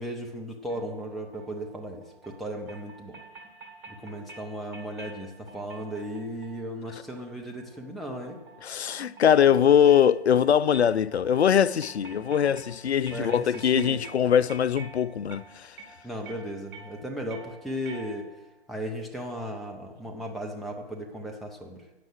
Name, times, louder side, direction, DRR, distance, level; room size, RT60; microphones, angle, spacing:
voice 1, 0.0-3.2 3.9-8.4 13.1-14.0 16.0-18.3 18.7-21.8, equal, ahead, 0.4 m, -36 dB
sound 1, 0.7-18.5, right 3 dB, 50° right, 2.2 m, -49 dB
voice 2, 8.6-15.8, left 8 dB, 85° left, 0.5 m, -22 dB
9.0 x 6.7 x 7.5 m
figure-of-eight pair, 125°, 32 cm